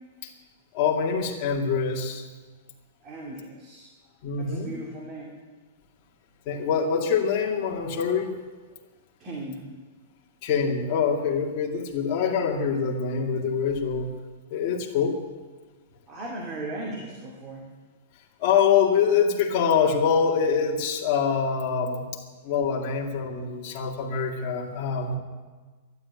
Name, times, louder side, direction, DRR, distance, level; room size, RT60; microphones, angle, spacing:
voice 1, 0.7-2.2 4.2-4.8 6.5-8.3 10.4-14.1 14.5-15.2 18.4-25.1, left 6 dB, 40° left, -2 dB, 2.3 m, -25 dB
voice 2, 3.0-3.9 4.4-5.3 9.2-9.6 16.1-17.7, right 2 dB, 25° right, -2 dB, 2.4 m, -37 dB
12.5 x 11.0 x 9.5 m, 1.4 s
supercardioid pair, 160°, 0 cm